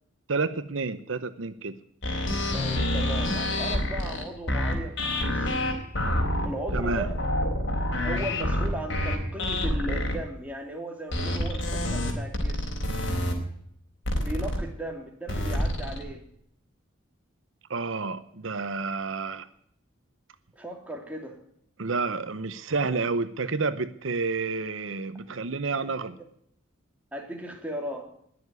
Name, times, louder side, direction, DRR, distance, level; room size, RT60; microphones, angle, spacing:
voice 1, 0.3-1.8 6.7-7.1 17.7-19.5 21.8-26.2, right 4 dB, 70° right, 12 dB, 0.8 m, -30 dB
sound 1, 2.0-10.2 11.1-13.3 14.0-14.6 15.3-16.0, left 1 dB, 60° left, 4.0 m, -27 dB
voice 2, 2.5-5.5 6.4-7.2 8.0-12.7 14.2-16.2 20.5-21.4 27.1-28.1, right 1 dB, 5° right, 1 dB, 3.0 m, -37 dB
20.5 x 7.2 x 9.5 m, 0.69 s
head